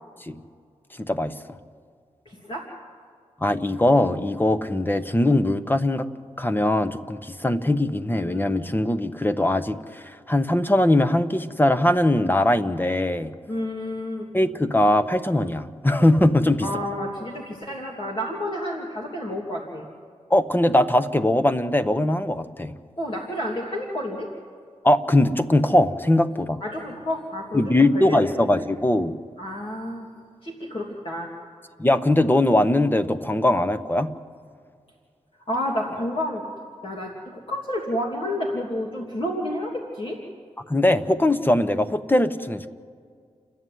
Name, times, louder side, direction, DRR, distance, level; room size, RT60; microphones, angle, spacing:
voice 1, 1.0-1.3 3.4-6.1 6.4-13.3 14.3-16.7 20.3-22.7 24.8-26.6 27.5-29.2 31.8-34.1 40.7-42.7, left 1 dB, 15° left, 10 dB, 1.2 m, -21 dB
voice 2, 2.2-2.6 13.5-14.3 16.6-19.8 23.0-24.3 26.6-28.5 29.4-30.1 30.4-31.3 35.5-36.4 36.8-40.2, left 1 dB, 45° left, -2 dB, 3.0 m, -30 dB
29.5 x 11.5 x 9.5 m, 2.1 s
cardioid pair, 55°, 12 cm